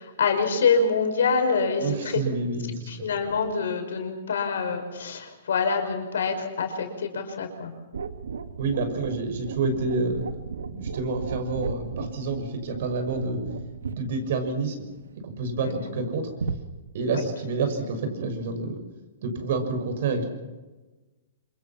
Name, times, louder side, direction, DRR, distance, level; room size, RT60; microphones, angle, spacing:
voice 1, 0.0-2.2 2.9-7.7 15.6-15.9 17.1-17.3, left 5 dB, 80° left, 5 dB, 5.7 m, -26 dB
voice 2, 1.8-3.1 8.6-10.2 10.7-13.4 14.0-14.7 15.2-16.2 16.9-18.8 19.2-20.2, right 3 dB, 60° right, 7 dB, 6.3 m, -28 dB
sound 1, 7.9-15.5 16.4-16.6, right 5 dB, 90° right, 1.7 m, -35 dB
27.0 x 23.5 x 6.0 m, 1.2 s
hypercardioid pair, 145°, 0 cm